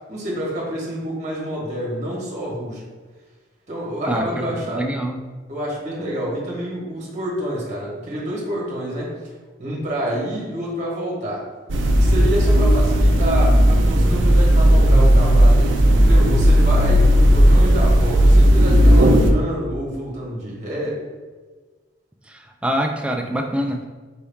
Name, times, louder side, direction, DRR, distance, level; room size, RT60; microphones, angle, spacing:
voice 1, 0.1-2.8 3.7-4.8 5.5-9.1 9.6-11.5 11.9-21.0, equal, 35° right, -4 dB, 1.2 m, -28 dB
voice 2, 4.1-5.2 22.3-23.9, equal, 5° right, 3 dB, 0.3 m, -25 dB
sound 1, 11.7-19.3, equal, 75° right, 0.5 m, -14 dB
4.6 x 2.7 x 3.5 m, 1.4 s
head